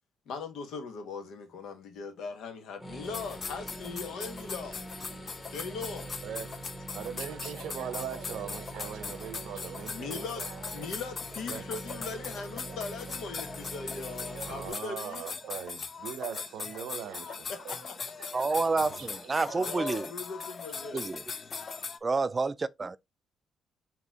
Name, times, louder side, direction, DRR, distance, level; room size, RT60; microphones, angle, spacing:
voice 1, 0.3-4.8 5.5-6.1 9.9-10.4 10.7-15.3 17.5-18.0 19.6-21.1, left 4 dB, 80° left, 1.1 m, -39 dB
sound 1, 2.8-14.7, right 1 dB, 25° left, 1.4 m, -44 dB
sound 2, 3.0-22.0, left 5 dB, 45° left, 0.4 m, -40 dB
voice 2, 6.2-6.5 6.9-10.9 11.5-11.6 12.2-12.8 13.1-13.2 14.3-19.6 20.7-20.9, right 8 dB, 80° right, 0.7 m, -41 dB
voice 3, 18.3-20.1 20.9-21.2 22.0-23.0, right 3 dB, 30° right, 0.3 m, -29 dB
4.1 x 2.9 x 3.5 m
cardioid pair, 90°, 0 cm